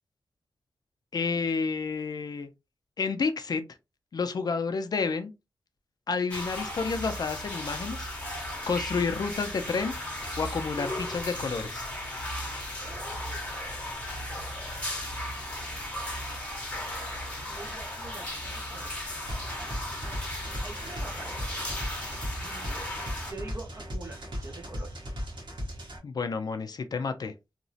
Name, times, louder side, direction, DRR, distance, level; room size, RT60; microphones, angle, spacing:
voice 1, 1.1-2.5 3.0-3.6 4.1-5.3 6.1-8.1 8.7-9.9 10.4-11.8 26.0-27.3, left 4 dB, 55° left, 0.4 m, -30 dB
sound 1, 6.3-23.3, left 1 dB, 15° left, 0.8 m, -36 dB
voice 2, 12.8-13.4 17.5-18.9 20.6-21.3 22.4-22.8 23.3-25.1, right 2 dB, 35° right, 0.7 m, -45 dB
sound 2, 19.3-26.0, equal, 75° right, 1.0 m, -37 dB
2.9 x 2.0 x 2.6 m
wide cardioid pair, 150°, 8 cm